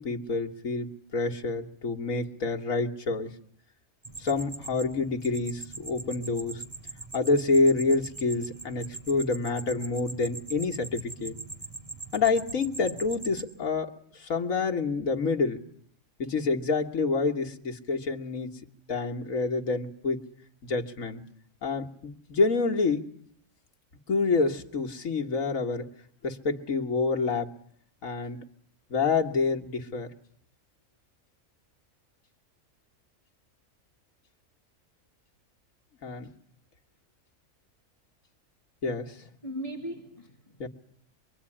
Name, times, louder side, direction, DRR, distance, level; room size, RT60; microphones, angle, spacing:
voice 1, 0.0-3.3 4.2-6.6 7.1-11.4 12.1-13.9 14.2-15.6 16.2-18.6 18.9-20.2 20.6-21.2 21.6-23.0 24.1-25.9 26.2-27.5 28.0-28.4 28.9-30.1 36.0-36.3 38.8-39.1 40.6-40.7, left 4 dB, 90° left, 2.0 m, -27 dB
sound 1, 4.0-13.4, right 2 dB, 25° right, 5.2 m, -42 dB
voice 2, 39.4-40.7, right 1 dB, 25° left, 1.9 m, -38 dB
26.0 x 22.5 x 10.0 m
omnidirectional pair, 1.4 m